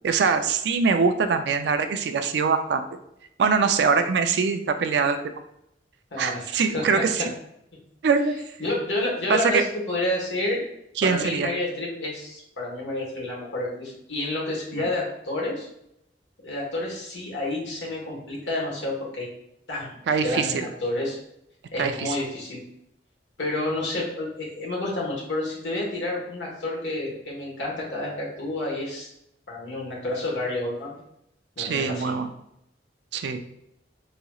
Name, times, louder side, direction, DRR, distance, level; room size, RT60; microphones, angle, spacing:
voice 1, 0.0-2.8 3.4-5.2 6.2-7.3 8.0-8.4 9.3-9.6 11.0-11.5 14.8-14.9 20.1-20.7 21.8-22.2 31.6-32.3 33.1-33.4, right 5 dB, 65° right, 8 dB, 0.4 m, -23 dB
voice 2, 6.1-7.3 8.6-10.6 11.0-15.7 16.4-19.3 19.7-21.2 21.7-22.6 23.4-29.1 29.5-31.0 31.6-32.1, left 2 dB, 85° left, -3 dB, 1.3 m, -29 dB
4.1 x 2.8 x 2.3 m, 0.78 s
head